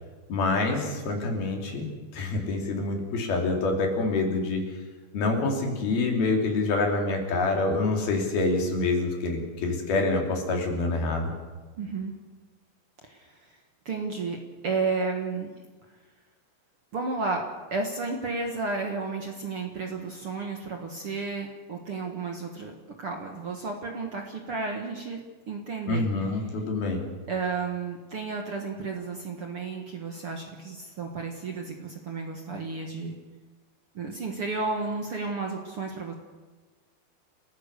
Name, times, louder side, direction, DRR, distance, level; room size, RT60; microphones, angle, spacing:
voice 1, 0.3-4.6 5.1-11.3 25.9-27.0, left 3 dB, 60° left, 2 dB, 4.9 m, -26 dB
voice 2, 11.8-12.1 13.0-13.5 13.8-15.5 16.9-25.2 25.5-26.1 27.3-33.1 33.9-36.1, right 4 dB, 70° right, 2 dB, 1.3 m, -32 dB
29.0 x 15.0 x 6.8 m, 1.4 s
omnidirectional pair, 5.1 m